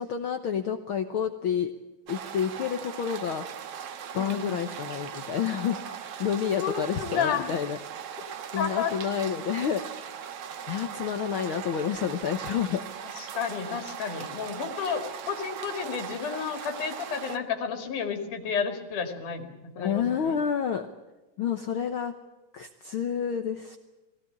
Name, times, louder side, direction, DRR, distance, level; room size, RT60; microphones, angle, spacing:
voice 1, 0.0-1.7 2.1-3.4 4.1-7.8 8.5-9.8 10.7-12.9 19.8-20.9 21.4-22.2 22.5-23.8, left 8 dB, 65° left, 7 dB, 1.3 m, -29 dB
sound 1, 2.1-17.4, right 8 dB, 60° right, 1.9 m, -39 dB
voice 2, 4.1-4.6 6.6-7.5 8.6-8.9 13.2-20.4, left 7 dB, 85° left, 5 dB, 3.7 m, -31 dB
20.0 x 17.0 x 9.6 m, 1.1 s
omnidirectional pair, 3.5 m